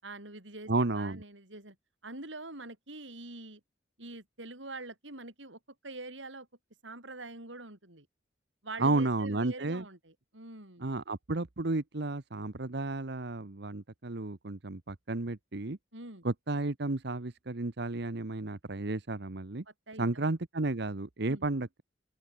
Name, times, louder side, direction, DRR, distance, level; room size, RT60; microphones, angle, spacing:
voice 1, 0.0-1.8 2.0-3.6 4.0-6.5 6.8-8.1 8.6-10.9 15.9-16.2 19.7-20.3 21.3-21.5, right 2 dB, 85° right, 8.0 m, -45 dB
voice 2, 0.7-1.2 8.8-9.8 10.8-15.8 16.2-19.6 20.0-21.8, right 2 dB, 60° right, 1.1 m, -32 dB
open air
head